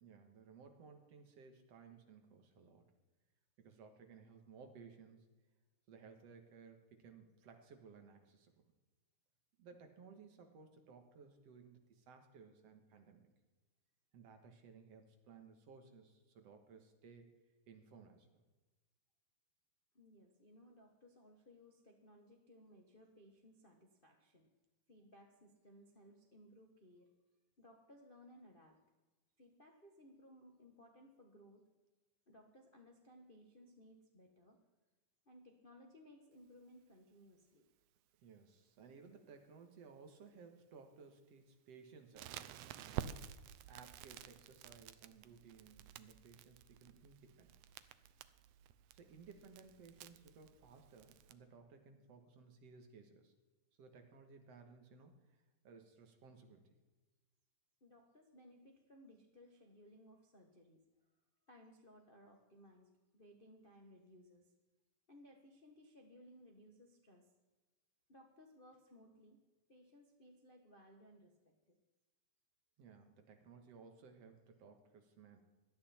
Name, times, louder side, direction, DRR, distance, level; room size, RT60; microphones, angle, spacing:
voice 1, 0.0-2.9 3.6-5.3 5.9-8.6 9.6-13.3 14.1-17.3 17.7-18.4 38.2-42.6 43.7-47.6 48.9-53.3 53.8-55.4 55.6-56.7 72.8-75.4, right 5 dB, 55° right, 5 dB, 2.4 m, -59 dB
voice 2, 19.9-24.5 24.9-27.1 27.6-28.8 29.4-31.7 32.3-34.6 35.2-37.6 57.8-60.8 61.5-64.5 65.1-67.3 68.1-69.4 69.7-71.8, equal, 80° left, 1 dB, 0.4 m, -62 dB
Crackle, 42.2-51.3, right 11 dB, 85° right, 1.4 m, -51 dB
17.5 x 12.5 x 4.4 m, 1.2 s
omnidirectional pair, 3.6 m